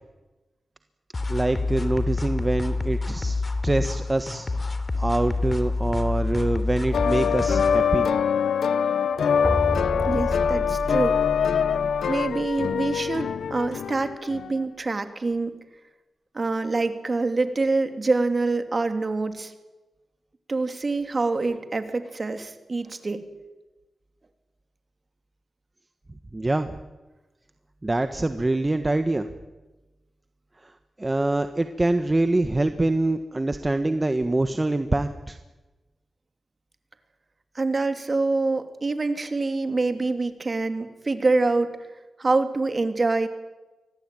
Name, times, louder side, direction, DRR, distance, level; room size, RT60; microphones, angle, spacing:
sound 1, 1.1-7.8, left 3 dB, 40° left, 3.2 m, -27 dB
voice 1, 1.3-3.4 3.6-4.5 5.0-8.1 26.3-26.8 27.8-29.3 30.6-30.7 31.0-35.4, right 2 dB, 30° right, 8 dB, 1.5 m, -25 dB
sound 2, 6.9-14.5, left 7 dB, 90° left, 0.7 m, -24 dB
sound 3, 9.1-13.1, left 1 dB, 15° left, 2.4 m, -31 dB
voice 2, 10.1-11.2 12.1-15.6 16.3-19.5 20.5-23.2 37.5-41.8 42.2-43.3, right 3 dB, 45° right, 8 dB, 2.9 m, -25 dB
24.5 x 18.0 x 9.2 m, 1.1 s
cardioid pair, 50°, 0 cm